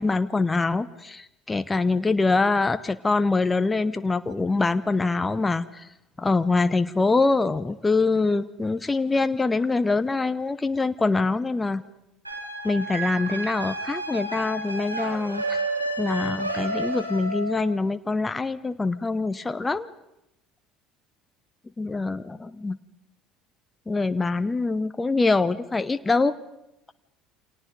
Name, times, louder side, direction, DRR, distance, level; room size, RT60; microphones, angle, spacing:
voice 1, 0.0-5.9 6.2-11.8 12.6-15.6 16.0-19.9 21.8-22.8 23.9-26.4, left 3 dB, 15° left, 12 dB, 0.8 m, -24 dB
sound 1, 12.2-17.8, right 2 dB, 90° right, 2.7 m, -31 dB
28.5 x 26.0 x 5.3 m, 0.89 s
figure-of-eight pair, 60°, 0 cm